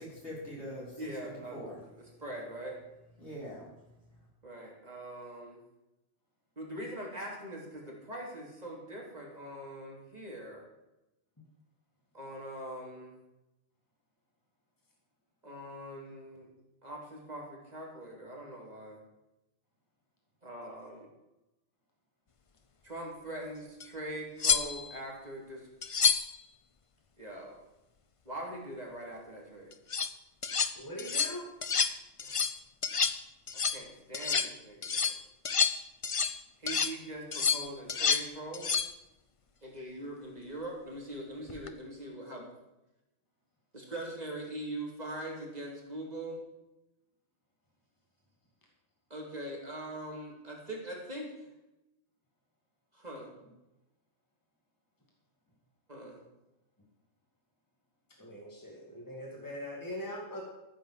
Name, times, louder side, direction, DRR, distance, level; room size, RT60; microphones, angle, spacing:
voice 1, 0.0-1.8 3.2-3.7, equal, 65° left, -5 dB, 5.4 m, -43 dB
voice 2, 1.0-2.8 4.4-5.6 6.6-10.6 12.1-13.2 15.4-16.5 16.8-19.0 20.4-21.1 22.8-25.7 27.2-27.6 28.2-29.7 32.2-32.5 33.5-35.2 36.6-38.7 39.6-42.5 43.7-46.4 49.1-51.5 52.9-53.3 55.9-56.2, right 1 dB, 35° right, -2 dB, 3.1 m, -42 dB
sound 1, 23.8-23.9 24.4-25.0 25.8-26.4 29.7-30.1 30.4-30.7 31.0-31.3 31.6-31.9 32.2-32.6 32.8-33.2 33.5-33.8 34.1-34.5 34.8-36.4 36.7-36.9 37.3-38.3 38.5-38.9 41.5-41.7, left 5 dB, 35° left, 0.5 m, -29 dB
voice 3, 30.7-31.4 58.2-60.4, left 1 dB, 15° left, -2 dB, 2.5 m, -41 dB
14.0 x 7.5 x 7.4 m, 0.97 s
omnidirectional pair, 1.3 m